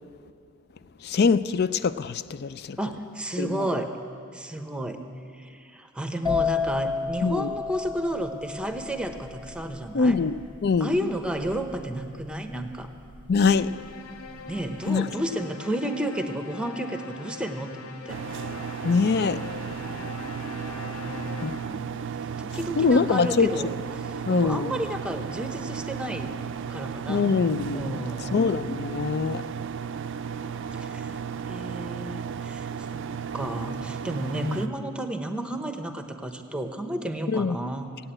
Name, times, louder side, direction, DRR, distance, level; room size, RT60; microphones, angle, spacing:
voice 1, 1.0-2.8 3.4-3.7 7.2-7.5 9.9-10.9 13.3-13.7 14.9-15.1 18.8-19.4 21.4-21.5 22.8-23.5 24.3-24.8 27.1-29.4 34.4-34.6 37.3-37.6, left 4 dB, 50° left, 15 dB, 0.4 m, -23 dB
voice 2, 2.8-3.9 4.3-5.0 5.4-10.2 10.8-12.9 14.5-18.2 21.1-22.0 22.4-26.3 26.7-27.3 27.7-28.5 30.7-31.2 31.5-37.9, right 1 dB, 5° right, 6 dB, 0.8 m, -32 dB
sound 1, 6.2-13.8 14.1-14.6, left 5 dB, 25° left, 1.2 m, -31 dB
sound 2, 13.4-22.0, left 4 dB, 85° left, 0.8 m, -42 dB
sound 3, 18.1-34.7, right 7 dB, 60° right, 0.4 m, -34 dB
16.0 x 8.9 x 8.9 m, 2.4 s
head